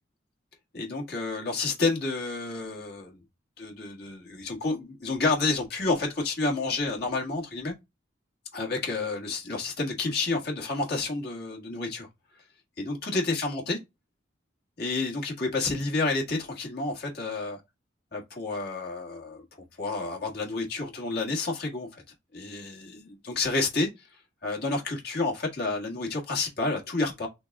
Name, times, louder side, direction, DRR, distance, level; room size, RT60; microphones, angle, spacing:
voice 1, 0.7-3.2 3.6-7.7 8.5-12.1 12.8-13.8 14.8-17.6 18.1-19.4 19.8-22.0 22.3-24.1 24.4-27.3, left 3 dB, 55° left, 1.7 m, -30 dB
3.9 x 3.5 x 3.5 m
head